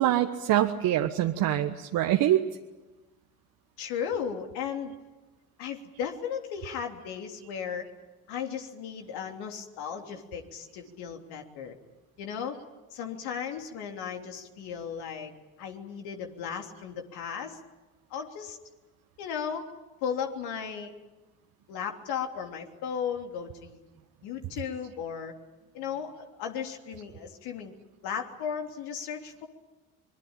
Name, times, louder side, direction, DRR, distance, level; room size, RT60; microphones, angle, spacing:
voice 1, 0.0-2.4, right 13 dB, 50° right, 5 dB, 1.4 m, -24 dB
voice 2, 3.8-4.9 5.6-7.9 8.3-11.8 12.2-12.6 12.9-15.3 15.6-17.6 18.1-18.6 19.2-19.7 20.0-21.0 21.7-23.8 24.2-25.3 25.7-27.7 28.0-29.5, left 7 dB, 60° left, 4 dB, 3.3 m, -35 dB
25.5 x 22.0 x 9.0 m, 1.1 s
hypercardioid pair, 60°, 43 cm